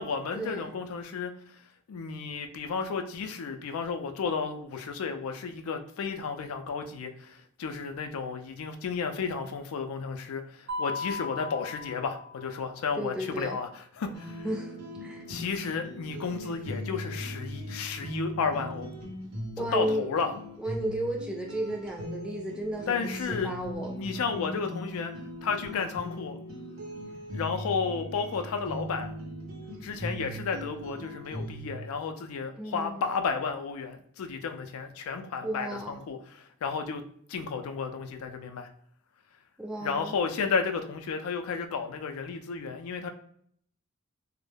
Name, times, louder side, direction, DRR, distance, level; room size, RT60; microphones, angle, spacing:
voice 1, 0.0-1.6 1.9-14.5 15.3-18.9 19.7-20.4 22.9-23.5 24.0-26.4 27.3-29.2 29.8-38.7 39.8-43.1, left 5 dB, 75° left, 7 dB, 0.3 m, -33 dB
Mallet percussion, 10.7-12.8, left 3 dB, 50° right, 0.6 m, -37 dB
voice 2, 13.0-13.6 14.1-14.2 14.4-14.7 15.0-15.3 19.6-20.1 20.6-23.1 23.4-24.0 32.5-33.0 35.4-36.0 39.6-40.1, right 1 dB, 5° right, -1 dB, 0.3 m, -33 dB
sound 1, 14.1-31.7, equal, 90° right, 0.7 m, -39 dB
2.2 x 2.0 x 3.1 m, 0.64 s
head